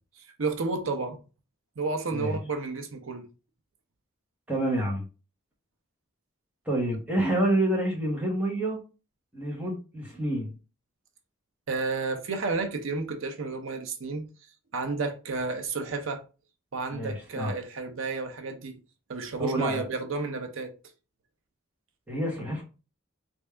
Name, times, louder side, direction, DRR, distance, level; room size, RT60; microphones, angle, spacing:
voice 1, 0.4-1.2 1.8-3.3 11.7-14.2 14.7-16.2 16.7-18.8 19.1-20.7, right 3 dB, 70° right, 0.7 m, -31 dB
voice 2, 4.5-5.0 6.7-8.8 9.3-10.5 16.9-17.5 19.4-19.8 22.1-22.6, right 1 dB, 5° right, 1.1 m, -28 dB
3.5 x 2.6 x 3.3 m
head